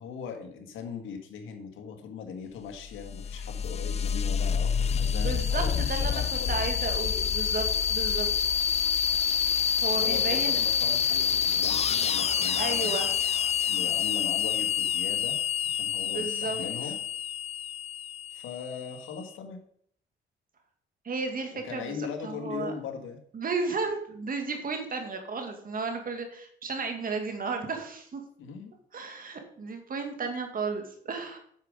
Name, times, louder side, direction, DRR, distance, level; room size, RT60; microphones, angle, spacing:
voice 1, 0.0-6.6 9.9-13.1 13.7-15.4 15.7-17.0 18.3-19.6 21.5-23.2 28.4-28.7, left 6 dB, 85° left, 4 dB, 1.9 m, -39 dB
sound 1, 2.8-19.2, left 8 dB, 35° left, 0.4 m, -27 dB
voice 2, 5.1-6.2 6.5-7.7 7.9-8.3 9.8-10.6 12.6-13.1 16.0-16.9 21.0-21.8 22.2-22.7 23.3-28.2 28.9-31.4, right 4 dB, 45° right, 4 dB, 2.2 m, -33 dB
9.0 x 6.6 x 5.2 m, 0.64 s
cardioid pair, 90°, 20 cm